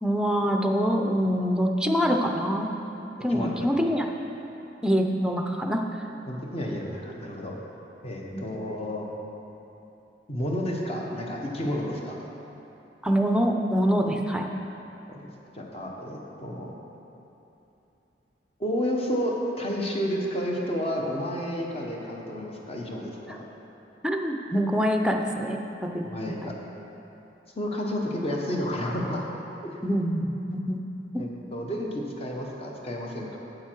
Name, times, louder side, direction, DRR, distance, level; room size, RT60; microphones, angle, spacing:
voice 1, 0.0-2.7 3.2-4.1 4.8-5.8 8.3-8.4 13.0-14.4 24.0-26.0 26.4-26.5 29.8-30.8 31.1-31.3, equal, 5° right, 2 dB, 0.5 m, -25 dB
voice 2, 3.3-3.7 6.3-7.6 8.0-9.1 10.3-12.2 15.1-16.7 18.6-23.3 26.0-26.5 27.5-29.3 29.6-29.8 31.2-33.4, equal, 35° left, -1 dB, 1.1 m, -31 dB
9.3 x 7.7 x 4.6 m, 3.0 s
head